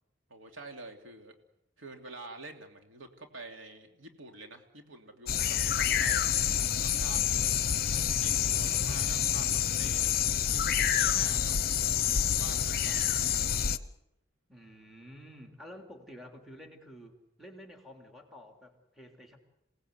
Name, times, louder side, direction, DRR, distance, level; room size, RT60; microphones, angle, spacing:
voice 1, 0.3-1.3 1.8-6.3 6.8-7.5 7.9-10.1 10.5-13.0, right 2 dB, 85° right, 4 dB, 2.9 m, -47 dB
sound 1, 5.3-13.8, left 9 dB, 50° left, 0.9 m, -28 dB
voice 2, 14.5-19.4, equal, ahead, 3 dB, 3.2 m, -50 dB
28.0 x 18.0 x 8.2 m, 0.89 s
head